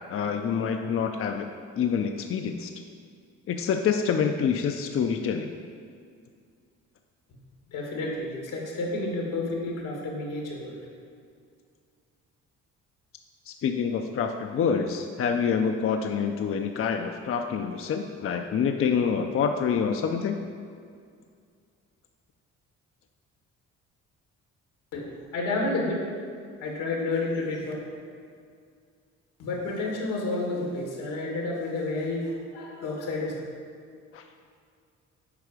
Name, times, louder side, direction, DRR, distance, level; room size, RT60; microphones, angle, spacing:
voice 1, 0.1-1.5 1.8-2.7 3.5-5.5 13.5-20.4 34.1-34.2, left 6 dB, 45° left, 5 dB, 0.5 m, -27 dB
voice 2, 7.7-10.8 24.9-25.1 25.3-26.1 26.6-27.7 29.4-33.4, left 2 dB, 90° left, -1 dB, 1.9 m, -30 dB
8.2 x 4.8 x 4.9 m, 2.2 s
cardioid pair, 90°, 30 cm